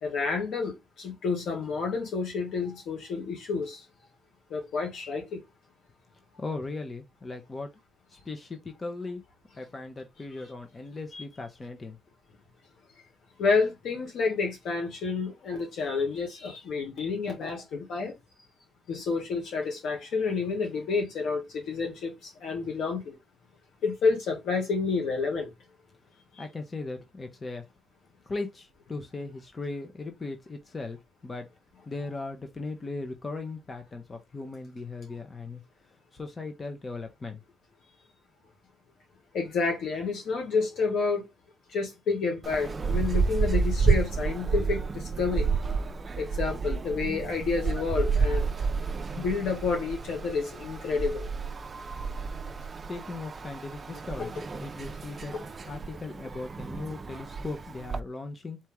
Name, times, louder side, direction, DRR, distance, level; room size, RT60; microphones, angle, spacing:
voice 1, 0.0-3.8 4.5-5.4 13.4-18.1 18.9-23.2 23.8-25.5 26.3-26.4 39.3-41.2 41.7-45.5 46.2-48.5 49.1-51.3 54.2-54.3, left 4 dB, 75° left, 1.9 m, -29 dB
voice 2, 6.4-7.7 8.1-9.2 9.6-12.0 26.4-27.6 28.3-31.5 31.9-35.6 36.1-37.4 52.9-55.3 55.6-58.6, left 3 dB, 30° left, 1.0 m, -38 dB
sound 1, 42.4-58.0, right 5 dB, 35° right, 0.5 m, -30 dB
4.4 x 3.0 x 3.6 m
cardioid pair, 90°, 0 cm